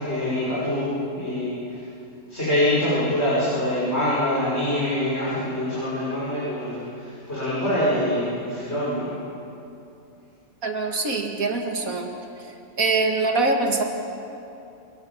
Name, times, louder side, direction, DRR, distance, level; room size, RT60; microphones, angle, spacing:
voice 1, 0.0-1.8 2.3-9.1, left 1 dB, 50° left, -10 dB, 6.9 m, -25 dB
voice 2, 10.6-12.1 12.8-13.8, right 3 dB, 80° right, 3 dB, 2.6 m, -23 dB
27.0 x 19.0 x 7.6 m, 2.7 s
omnidirectional pair, 1.4 m